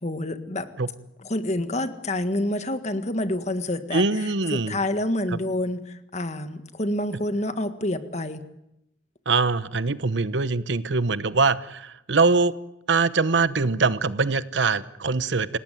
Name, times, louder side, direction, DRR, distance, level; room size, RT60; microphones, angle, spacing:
voice 1, 0.0-0.7 1.2-8.4, left 1 dB, 40° left, 9 dB, 1.7 m, -28 dB
voice 2, 3.9-4.7 5.3-5.4 9.3-12.6 12.9-15.6, right 4 dB, 75° right, 15 dB, 1.0 m, -23 dB
28.0 x 18.0 x 9.2 m, 0.85 s
head